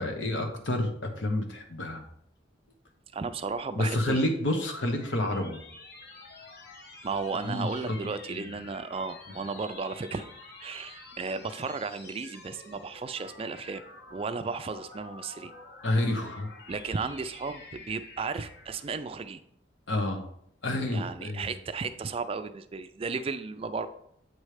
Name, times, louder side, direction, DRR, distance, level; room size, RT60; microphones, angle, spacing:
voice 1, 0.0-2.0 3.8-5.6 7.4-8.0 8.3-8.5 15.8-16.5 19.9-20.3 20.6-21.5, left 1 dB, 80° left, 4 dB, 1.1 m, -29 dB
voice 2, 3.1-4.3 7.0-10.3 10.6-13.8 14.1-15.5 16.7-19.4 20.9-23.9, right 4 dB, 30° right, 10 dB, 0.3 m, -34 dB
sound 1, 4.3-18.9, left 3 dB, 55° left, 0.9 m, -49 dB
8.1 x 3.1 x 4.9 m, 0.69 s
head